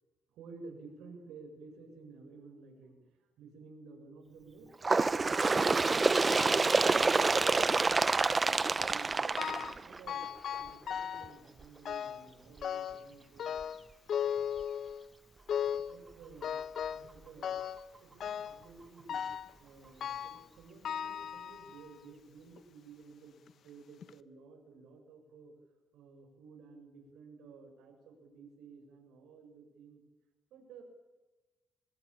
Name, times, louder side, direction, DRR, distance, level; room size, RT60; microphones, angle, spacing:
voice 1, 0.3-8.0 8.4-8.6 8.9-13.5 15.9-16.6 16.9-17.7 18.0-19.3 19.6-25.5 25.9-30.0 30.5-30.8, right 4 dB, 85° right, 3 dB, 7.0 m, -53 dB
Bird, 4.8-10.3 11.1-11.3 11.6-11.7 12.6-12.7 13.6-13.7 14.6-14.7, right 3 dB, 30° right, 0.8 m, -27 dB
sound 1, 9.4-9.8 10.1-11.4 11.8-12.3 12.6-13.1 13.4-15.1 15.5-16.0 16.4-17.1 17.4-17.9 18.2-18.6 19.1-19.5 20.0-20.5 20.8-21.9 22.6-22.7 23.5-23.6 24.0-24.1, left 8 dB, 65° left, 1.2 m, -37 dB
23.0 x 22.0 x 8.8 m, 1.2 s
cardioid pair, 90°, 0 cm